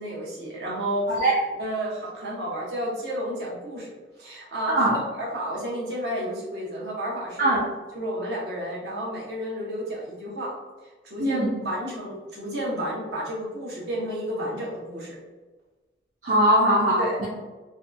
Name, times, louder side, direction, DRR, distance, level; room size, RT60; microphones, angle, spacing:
voice 1, 0.0-1.1 1.6-3.9 4.2-7.6 7.9-10.5 11.0-15.1 17.0-17.2, equal, 65° right, -5 dB, 0.9 m, -31 dB
voice 2, 4.7-5.0 7.4-7.6 11.2-11.5 16.2-17.3, right 1 dB, 45° right, -6 dB, 0.4 m, -21 dB
2.7 x 2.2 x 2.5 m, 1.2 s
head